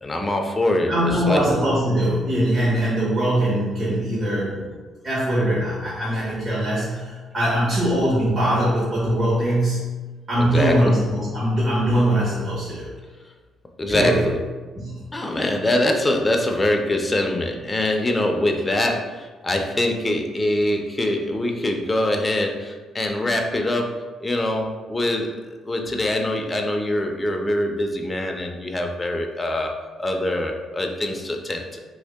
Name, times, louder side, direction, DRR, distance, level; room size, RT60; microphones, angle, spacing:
voice 1, 0.0-1.4 10.4-11.0 13.8-14.4 15.1-29.7 30.0-31.8, left 1 dB, 20° left, 3 dB, 0.5 m, -24 dB
voice 2, 0.9-4.6 5.0-10.0 10.3-12.9 13.9-14.3 14.7-15.0, right 1 dB, 45° right, -9 dB, 1.2 m, -21 dB
3.0 x 2.6 x 3.5 m, 1.3 s
cardioid pair, 90°, 0 cm